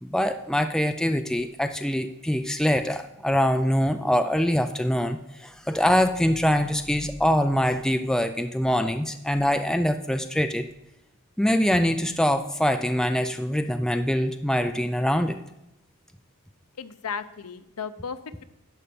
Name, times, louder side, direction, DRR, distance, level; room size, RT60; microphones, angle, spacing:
voice 1, 0.0-10.7 11.4-15.4, equal, 5° left, 8 dB, 0.4 m, -24 dB
voice 2, 16.8-18.4, left 6 dB, 90° left, 12 dB, 0.7 m, -35 dB
11.0 x 5.2 x 6.9 m, 0.86 s
head